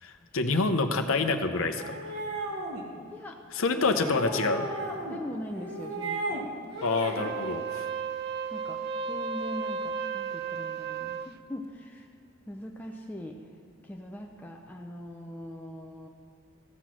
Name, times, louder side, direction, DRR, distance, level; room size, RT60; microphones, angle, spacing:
voice 1, 0.0-2.0 3.6-4.6 6.8-7.9, left 3 dB, 75° left, 7 dB, 0.7 m, -27 dB
sound 1, 1.8-2.8 3.8-5.2 5.5-6.4 6.7-7.3, right 2 dB, 65° right, 1.5 m, -35 dB
voice 2, 3.1-3.4 3.7-6.4 8.5-12.1 12.5-13.5 13.8-16.1, left 1 dB, 10° left, 0 dB, 0.5 m, -41 dB
Wind instrument woodwind instrument, 7.1-11.3, right 5 dB, 45° right, 0.4 m, -34 dB
14.5 x 6.0 x 6.1 m, 2.3 s
head